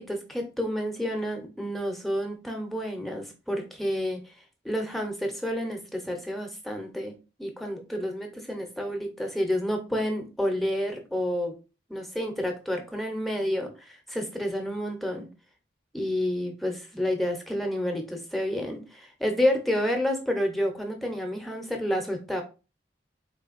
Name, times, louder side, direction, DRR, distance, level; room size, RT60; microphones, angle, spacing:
voice 1, 0.0-4.2 4.6-7.1 7.4-11.6 11.9-15.3 15.9-22.4, equal, ahead, 3 dB, 0.7 m, -29 dB
4.2 x 3.3 x 2.4 m, 0.31 s
head